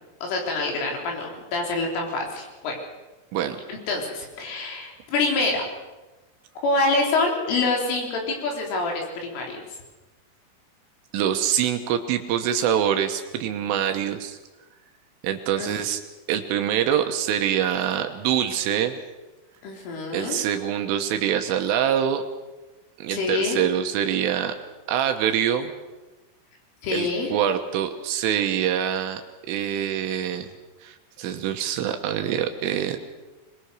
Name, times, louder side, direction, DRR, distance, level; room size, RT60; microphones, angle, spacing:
voice 1, 0.2-2.7 3.7-5.7 6.6-9.6 15.6-15.7 19.6-20.4 23.1-23.6 26.8-27.3, left 3 dB, 70° left, 0 dB, 6.2 m, -26 dB
voice 2, 11.1-14.4 15.2-16.0 16.3-19.0 20.1-22.2 23.0-24.6 24.9-25.7 26.9-29.2 29.5-30.5 30.8-33.0, right 9 dB, 80° right, 6 dB, 3.6 m, -25 dB
22.5 x 22.0 x 6.4 m, 1.1 s
omnidirectional pair, 5.9 m